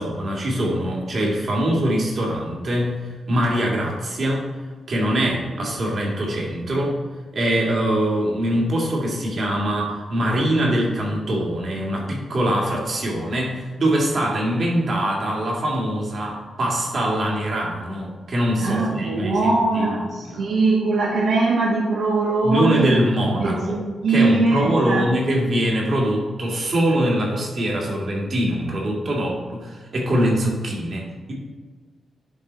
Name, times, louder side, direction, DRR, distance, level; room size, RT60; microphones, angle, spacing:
voice 1, 0.0-4.5 4.9-7.0 7.3-20.5 22.4-23.8 24.1-31.3, right 1 dB, 50° right, -3 dB, 2.2 m, -23 dB
voice 2, 18.6-22.9 23.4-25.1, right 3 dB, 85° right, -3 dB, 1.1 m, -21 dB
10.5 x 4.0 x 4.1 m, 1.5 s
wide cardioid pair, 140°, 0 cm